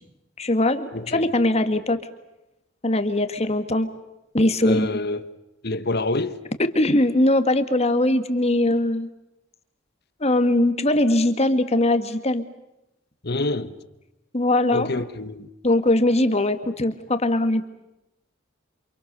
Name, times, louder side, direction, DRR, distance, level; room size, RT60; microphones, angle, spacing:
voice 1, 0.4-2.0 2.8-3.9 4.3-4.9 6.6-9.1 10.2-12.4 14.3-14.9 15.6-17.7, left 1 dB, 35° left, 1.8 m, -21 dB
voice 2, 4.6-5.2 5.6-6.4 13.2-13.7 14.7-15.5, left 2 dB, 55° left, 1.5 m, -26 dB
29.5 x 27.0 x 6.8 m
head